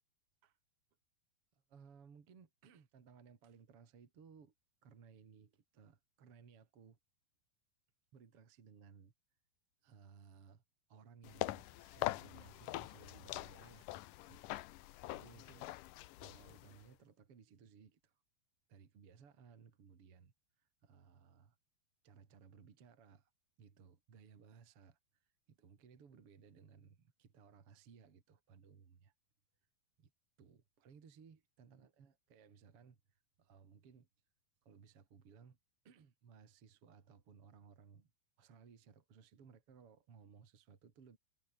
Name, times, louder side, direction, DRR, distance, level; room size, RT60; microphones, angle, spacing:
voice 1, 1.5-4.5 4.8-7.0 8.1-9.1 9.8-10.6 10.9-13.9 14.3-14.6 15.1-15.7 16.2-18.2 18.7-21.6 22.0-23.3 23.6-29.1 30.0-30.1 30.4-34.1 34.6-35.6 35.8-38.1 38.4-41.2, right 6 dB, 40° right, 3.2 m, -61 dB
sound 1, 11.2-16.9, left 17 dB, 80° left, 1.9 m, -44 dB
omnidirectional pair, 4.7 m